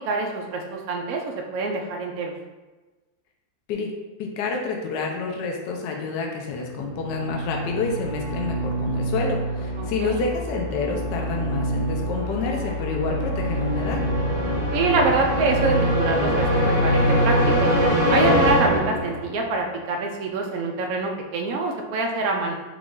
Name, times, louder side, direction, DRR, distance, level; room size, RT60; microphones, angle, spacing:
voice 1, 0.0-2.3 9.8-10.2 14.7-17.7 18.1-22.5, right 3 dB, 90° right, 1 dB, 0.7 m, -25 dB
voice 2, 4.2-14.0, left 4 dB, 75° left, 1 dB, 1.2 m, -28 dB
sound 1, 6.8-19.4, equal, 90° left, 2.2 m, -24 dB
5.0 x 2.4 x 3.7 m, 1.2 s
omnidirectional pair, 2.1 m